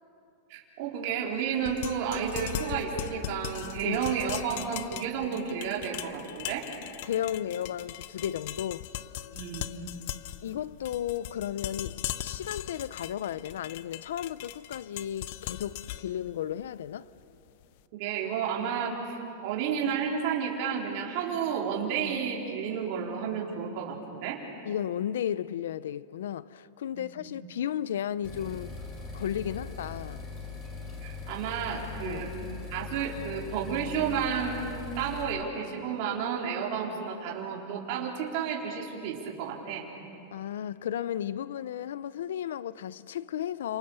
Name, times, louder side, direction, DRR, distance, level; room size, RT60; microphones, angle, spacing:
voice 1, 0.5-6.7 9.3-9.7 17.9-24.4 26.9-27.1 30.7-32.3 32.7-34.7 35.0-39.9, right 7 dB, 40° right, 4.0 m, -31 dB
sound 1, 1.6-17.6, left 13 dB, 45° left, 0.7 m, -39 dB
voice 2, 7.1-8.9 10.4-17.1 24.6-28.7 29.1-30.3 32.0-32.3 40.3-43.8, left 10 dB, 90° left, 0.6 m, -34 dB
sound 2, 28.2-35.2, left 4 dB, 20° left, 3.5 m, -41 dB
30.0 x 27.5 x 6.9 m
supercardioid pair, 175°, 0 cm